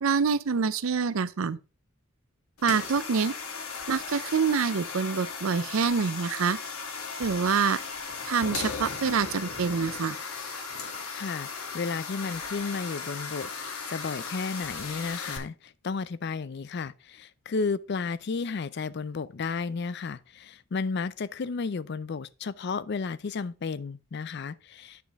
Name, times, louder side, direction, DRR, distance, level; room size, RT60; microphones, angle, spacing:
voice 1, 0.0-1.6 2.6-3.3 3.9-6.6 7.2-7.8 8.2-10.2, right 5 dB, 75° right, 0.5 m, -26 dB
sound 1, 2.6-15.4, left 5 dB, 90° left, 1.4 m, -37 dB
voice 2, 11.1-11.5 11.7-13.5 13.9-25.0, left 4 dB, 50° left, 0.4 m, -33 dB
9.4 x 5.1 x 3.5 m
head